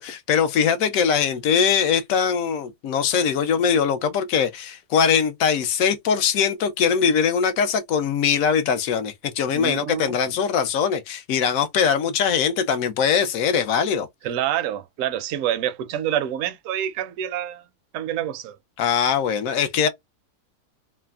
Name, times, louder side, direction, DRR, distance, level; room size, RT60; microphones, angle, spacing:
voice 1, 0.0-14.1 18.8-19.9, left 7 dB, 70° left, 0.9 m, -21 dB
voice 2, 9.5-10.1 14.2-17.7 17.9-18.6, right 11 dB, 70° right, 0.8 m, -27 dB
3.2 x 2.0 x 2.2 m
omnidirectional pair, 1.6 m